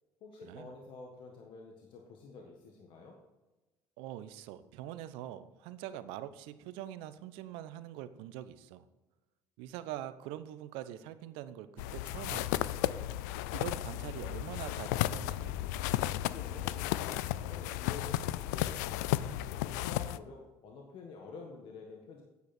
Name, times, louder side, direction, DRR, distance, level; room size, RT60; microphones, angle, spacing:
voice 1, 0.2-3.2 16.3-19.1 19.4-22.2, left 4 dB, 65° left, 1 dB, 1.7 m, -49 dB
voice 2, 4.0-8.8 9.6-12.7 13.5-15.6, right 12 dB, 80° right, 13 dB, 0.7 m, -44 dB
sound 1, 11.8-20.2, left 14 dB, 90° left, 0.4 m, -34 dB
9.4 x 8.2 x 4.3 m, 1.1 s
supercardioid pair, 75°, 9 cm